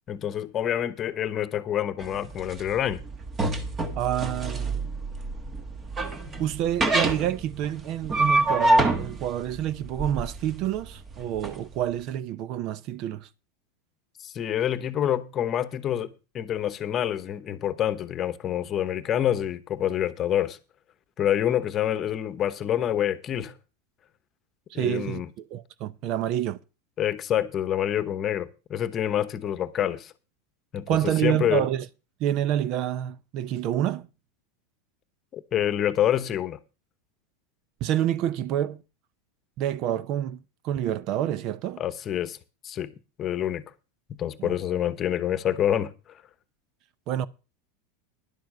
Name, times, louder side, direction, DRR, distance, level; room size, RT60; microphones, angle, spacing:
voice 1, 0.1-3.0 14.2-20.6 21.2-23.5 24.7-25.3 27.0-30.1 30.7-31.6 35.3-36.6 41.8-42.4 42.6-42.9 43.2-43.6 44.1-45.9, left 10 dB, 35° left, 1.0 m, -27 dB
sound 1, 2.0-11.5, right 2 dB, 25° right, 1.5 m, -26 dB
voice 2, 3.9-4.9 6.4-13.3 24.7-26.6 30.9-31.9 32.2-34.1 37.8-38.8 39.6-40.4 40.6-41.8 44.4-44.6 47.1-47.3, right 11 dB, 50° right, 0.6 m, -28 dB
11.0 x 7.2 x 6.5 m
supercardioid pair, 120°, 0 cm